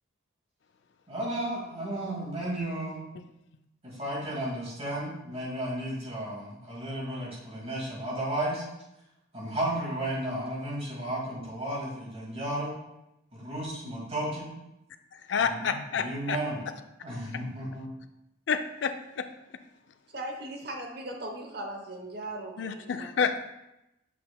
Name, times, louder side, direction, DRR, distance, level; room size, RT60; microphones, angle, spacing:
voice 1, 1.1-3.0 3.8-8.6 9.3-12.7 13.3-14.5 15.4-16.6 17.0-17.9, right 1 dB, 30° right, -5 dB, 2.1 m, -33 dB
voice 2, 15.3-16.4 18.5-19.3 22.6-23.4, left 6 dB, 60° left, 8 dB, 0.4 m, -29 dB
voice 3, 20.1-23.1, right 1 dB, 50° right, 2 dB, 1.0 m, -38 dB
7.5 x 6.0 x 2.2 m, 0.89 s
head